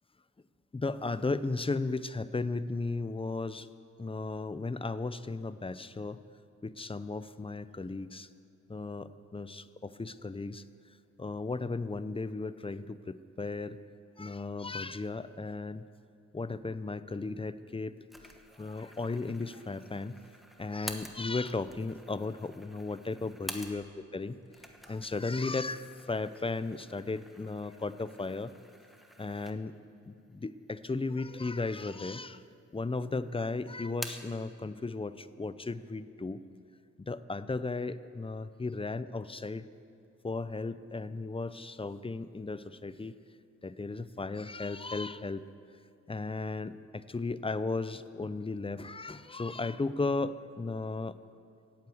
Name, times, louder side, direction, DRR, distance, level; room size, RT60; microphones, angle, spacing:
voice 1, 0.7-3.7 4.0-6.2 6.6-8.3 8.7-10.6 11.2-13.8 14.2-15.8 16.3-18.0 18.6-20.2 20.6-23.8 24.1-24.4 24.9-28.5 29.2-29.7 30.1-32.4 32.7-36.4 37.0-39.7 40.2-43.2 43.6-45.4 46.1-51.2, left 3 dB, 20° left, 14 dB, 0.5 m, -35 dB
sound 1, 18.1-24.1 24.4-29.9 30.3-30.4 31.2-31.9 32.2-33.0 33.3-34.4, equal, ahead, 1.2 m, -48 dB
17.0 x 8.8 x 7.8 m, 2.4 s
wide cardioid pair, 85°, 29 cm